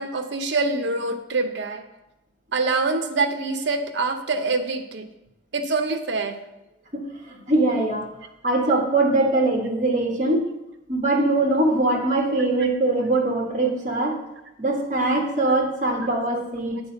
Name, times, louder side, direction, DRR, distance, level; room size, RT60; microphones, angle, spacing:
voice 1, 0.0-1.8 2.5-5.1 5.5-6.4 12.6-12.7 13.1-13.2 13.6-13.7, right 3 dB, 65° right, 7 dB, 0.7 m, -25 dB
voice 2, 6.9-8.1 8.4-10.5 10.9-14.1 14.6-16.8, right 2 dB, 40° right, 0 dB, 1.5 m, -22 dB
8.1 x 4.3 x 5.8 m, 0.91 s
head